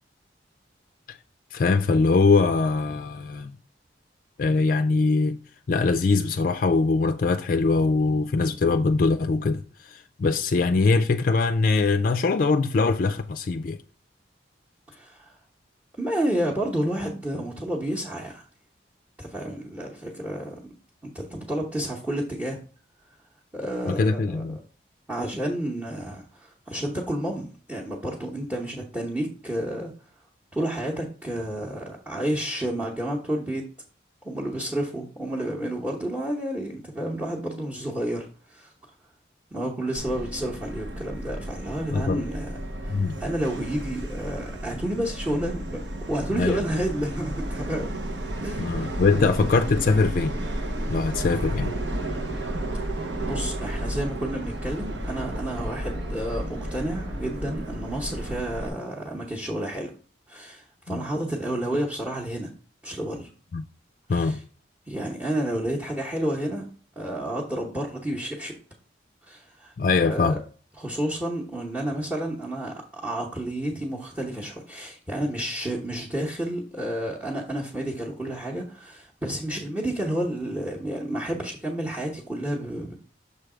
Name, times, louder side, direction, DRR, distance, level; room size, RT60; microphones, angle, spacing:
voice 1, 1.5-3.5 4.4-5.4 5.7-13.8 23.9-24.6 41.9-42.2 42.9-43.2 46.3-46.6 48.6-50.4 50.9-51.7 60.9-61.0 63.5-63.6 64.1-64.4 69.8-70.4, left 4 dB, 50° left, 0.4 m, -22 dB
voice 2, 14.9-15.4 16.0-18.4 19.2-20.6 21.0-22.6 23.5-24.6 25.1-29.9 30.5-33.6 34.2-38.7 39.5-48.0 48.4-49.3 53.3-59.9 60.3-62.5 62.8-63.3 64.1-64.4 64.9-66.7 67.0-68.6 69.2-69.7 70.0-70.4 70.8-82.9, right 1 dB, 10° right, 0.9 m, -30 dB
Subway metro underground, 39.9-58.7, right 1 dB, 80° right, 1.0 m, -32 dB
6.8 x 3.3 x 4.9 m
head